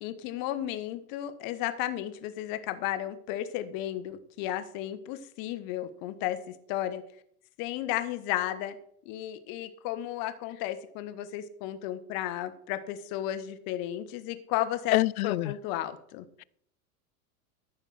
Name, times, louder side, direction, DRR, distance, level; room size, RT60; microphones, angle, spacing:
voice 1, 0.0-6.4 6.7-7.0 7.6-8.8 9.0-15.0 15.2-16.2, left 12 dB, 50° left, 1.4 m, -33 dB
voice 2, 14.9-15.5, left 17 dB, 70° left, 0.5 m, -25 dB
14.0 x 5.2 x 6.3 m
hypercardioid pair, 100°, 44 cm